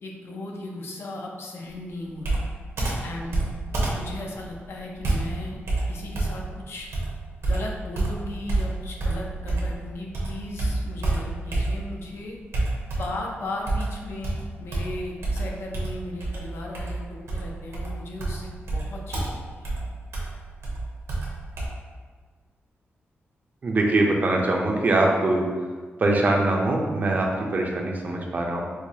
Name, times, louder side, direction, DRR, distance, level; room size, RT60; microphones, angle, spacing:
voice 1, 0.0-2.4 3.0-3.5 3.9-5.6 5.9-6.9 7.5-12.4 13.0-19.7, left 2 dB, 65° left, 0 dB, 0.5 m, -36 dB
Computer keyboard, 2.2-9.8 10.1-12.0 12.5-13.3 13.7-21.7, right 2 dB, 80° right, 0.9 m, -28 dB
voice 2, 23.6-25.4 26.0-28.6, right 2 dB, 40° right, 0 dB, 0.5 m, -22 dB
4.6 x 2.2 x 2.7 m, 1.5 s
wide cardioid pair, 135°, 4 cm